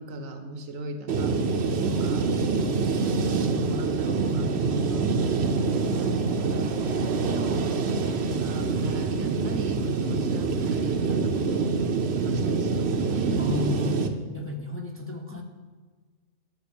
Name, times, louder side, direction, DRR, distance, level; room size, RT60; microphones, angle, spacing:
voice 1, 0.0-1.4 1.9-2.3 3.1-5.1 5.7-7.7 8.2-11.7 12.1-13.5 15.3-15.4, right 1 dB, 80° right, 7 dB, 1.4 m, -37 dB
sound 1, 1.1-14.1, right 4 dB, 60° right, 1.0 m, -25 dB
voice 2, 1.7-2.0 10.1-10.2 13.4-14.0 14.3-15.4, left 2 dB, 10° left, 2 dB, 0.7 m, -33 dB
10.0 x 6.4 x 7.1 m, 1.4 s
omnidirectional pair, 1.3 m